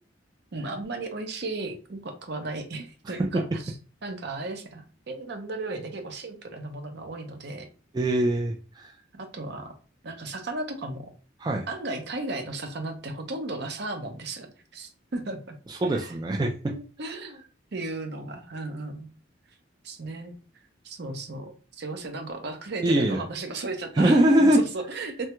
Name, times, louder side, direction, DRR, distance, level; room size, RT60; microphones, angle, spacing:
voice 1, 0.5-3.7 4.0-7.7 9.1-9.7 10.0-11.1 11.7-14.5 14.7-15.6 15.8-16.1 16.7-17.4 17.7-19.1 19.8-20.3 20.8-25.3, right 2 dB, 60° right, 6 dB, 0.6 m, -35 dB
voice 2, 7.9-8.9 11.4-11.7 15.7-16.7 22.8-23.2 23.9-24.6, right 1 dB, 20° right, 1 dB, 0.3 m, -22 dB
3.2 x 2.3 x 2.9 m, 0.37 s
head